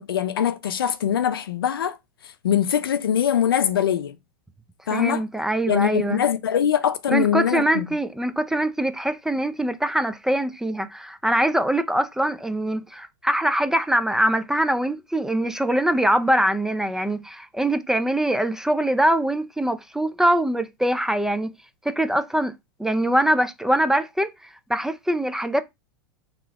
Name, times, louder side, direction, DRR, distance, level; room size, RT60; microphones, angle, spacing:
voice 1, 0.0-2.0 2.4-4.1 4.9-5.2 5.7-7.9, left 9 dB, 85° left, 0.7 m, -22 dB
voice 2, 4.9-6.2 7.1-21.5 21.8-22.5 22.8-25.6, right 1 dB, 5° right, 0.6 m, -23 dB
3.7 x 3.0 x 4.8 m
hypercardioid pair, 100°, 12 cm